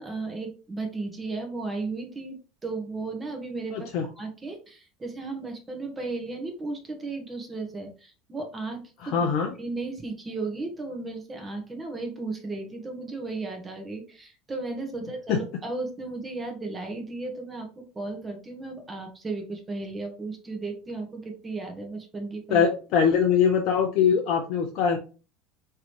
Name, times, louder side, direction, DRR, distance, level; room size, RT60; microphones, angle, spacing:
voice 1, 0.0-3.9 4.2-9.3 9.6-22.7, right 3 dB, 20° right, 4 dB, 1.5 m, -35 dB
voice 2, 3.7-4.0 9.0-9.5 15.3-15.4 22.5-25.0, left 7 dB, 60° left, 2 dB, 0.6 m, -22 dB
3.7 x 3.3 x 3.1 m, 0.35 s
hypercardioid pair, 75°, 0 cm